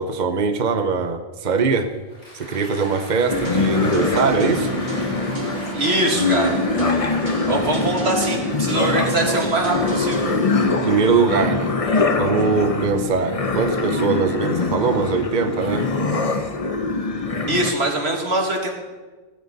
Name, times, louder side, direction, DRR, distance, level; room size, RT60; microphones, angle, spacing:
voice 1, 0.0-1.9 2.3-4.8 7.5-7.7 10.8-11.8 12.2-15.9, right 5 dB, 50° right, 7 dB, 1.0 m, -21 dB
Applause, 1.9-9.0, left 1 dB, 75° left, 7.0 m, -38 dB
sound 1, 3.3-17.7, left 3 dB, 35° left, 1.1 m, -23 dB
sound 2, 3.4-11.1, right 1 dB, 70° right, 2.9 m, -31 dB
voice 2, 5.7-6.5 7.5-10.2 17.5-18.7, right 2 dB, 85° right, 1 dB, 2.6 m, -22 dB
17.5 x 15.5 x 4.1 m, 1.3 s
omnidirectional pair, 1.1 m